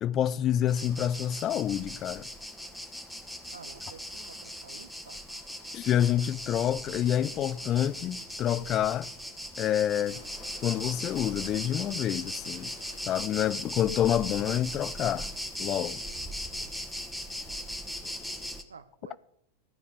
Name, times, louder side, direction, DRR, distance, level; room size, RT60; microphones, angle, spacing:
voice 1, 0.0-2.3 5.7-9.1 9.6-10.2 10.6-12.7 13.1-15.3 15.6-16.0, left 11 dB, 30° left, 0.4 m, -28 dB
sound 1, 0.7-18.6, equal, ahead, 1.3 m, -39 dB
voice 2, 3.5-5.2 18.7-19.2, right 5 dB, 70° right, 0.8 m, -50 dB
sound 2, 9.9-13.9, left 1 dB, 90° right, 6.3 m, -55 dB
13.5 x 5.1 x 8.4 m
figure-of-eight pair, 90°, 0 cm